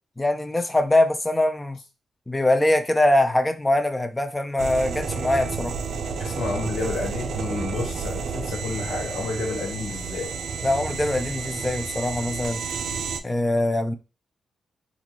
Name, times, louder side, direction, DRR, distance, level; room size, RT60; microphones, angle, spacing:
voice 1, 0.2-1.8 2.3-5.8 10.6-12.6 13.2-13.9, left 1 dB, 15° left, 0.5 m, -22 dB
sound 1, 4.6-13.2, right 5 dB, 80° right, 0.4 m, -31 dB
voice 2, 6.2-10.3, left 3 dB, 85° left, 1.3 m, -30 dB
3.7 x 2.5 x 3.0 m
cardioid pair, 100°, 0 cm